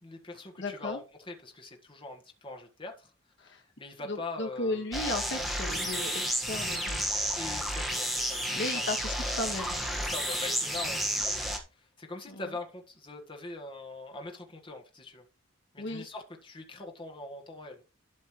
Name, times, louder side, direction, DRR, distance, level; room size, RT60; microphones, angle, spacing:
voice 1, 0.0-3.1 3.4-4.8 7.3-8.9 9.9-15.2 15.7-17.8, left 3 dB, 25° left, 1.6 m, -43 dB
voice 2, 0.6-1.0 3.4-3.6 4.0-7.0 8.5-9.7 12.3-12.5 15.8-16.1, left 2 dB, 60° left, 1.7 m, -35 dB
sound 1, 4.9-11.6, equal, ahead, 1.5 m, -31 dB
12.5 x 6.5 x 3.1 m
head